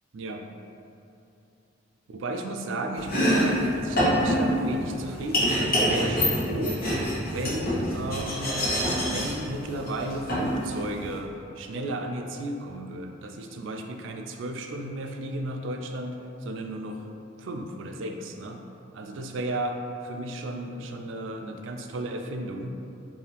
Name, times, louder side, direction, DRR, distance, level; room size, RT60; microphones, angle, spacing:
voice 1, 0.1-0.5 2.1-6.8 7.3-8.6 9.0-17.0 17.4-18.6 18.9-22.7, right 1 dB, 75° right, 4 dB, 0.4 m, -34 dB
Domestic sounds home sounds, 2.9-11.2, equal, 50° left, 1.1 m, -26 dB
4.7 x 2.6 x 3.3 m, 2.7 s
head